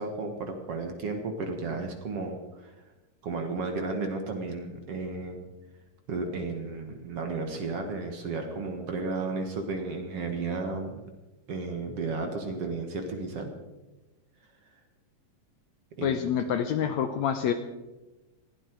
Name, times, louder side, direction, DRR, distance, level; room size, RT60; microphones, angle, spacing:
voice 1, 0.0-2.7 3.2-5.4 6.1-11.0 11.5-13.5 16.0-16.1 16.8-16.9, right 3 dB, 50° right, 5 dB, 2.2 m, -33 dB
voice 2, 16.0-17.5, left 8 dB, 70° left, 8 dB, 1.8 m, -27 dB
19.5 x 15.5 x 4.6 m, 1.1 s
omnidirectional pair, 3.9 m